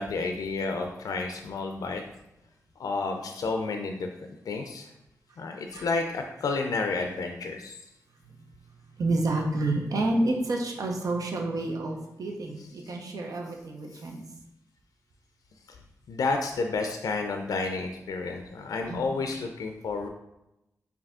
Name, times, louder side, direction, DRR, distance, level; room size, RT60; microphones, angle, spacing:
voice 1, 0.0-2.0 2.8-4.9 5.4-7.8 16.1-20.1, left 3 dB, 80° left, 4 dB, 0.4 m, -31 dB
voice 2, 9.0-14.2 18.9-19.1, right 2 dB, 75° right, 1 dB, 0.7 m, -29 dB
4.8 x 2.7 x 3.5 m, 0.89 s
cardioid pair, 55°, 6 cm